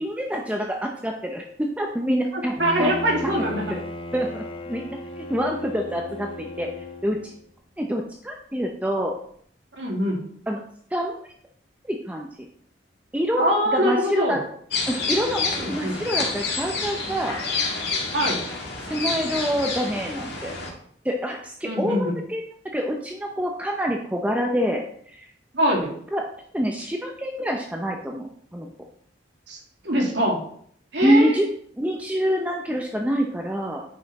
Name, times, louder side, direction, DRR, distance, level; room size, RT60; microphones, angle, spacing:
voice 1, 0.0-2.9 3.2-3.4 3.7-3.8 4.1-6.7 7.0-7.3 7.8-9.1 10.5-10.6 10.9-11.2 11.8-12.3 13.1-13.4 13.7-14.4 14.9-17.4 18.9-20.5 21.0-22.4 22.7-25.3 26.1-26.2 26.5-28.7 31.0-31.5 31.8-33.8, equal, 10° right, 1 dB, 0.7 m, -26 dB
Bowed string instrument, 2.6-7.4, left 1 dB, 30° left, 0.8 m, -36 dB
voice 2, 2.6-3.6 9.8-10.2 13.4-14.4 15.6-16.0 18.1-18.4 21.6-22.1 25.5-25.9 29.5-29.6 29.8-30.4 30.9-31.4, equal, 70° right, -2 dB, 2.6 m, -23 dB
sound 1, 14.7-20.7, left 4 dB, 65° left, 1.9 m, -28 dB
9.5 x 5.6 x 4.2 m, 0.63 s
head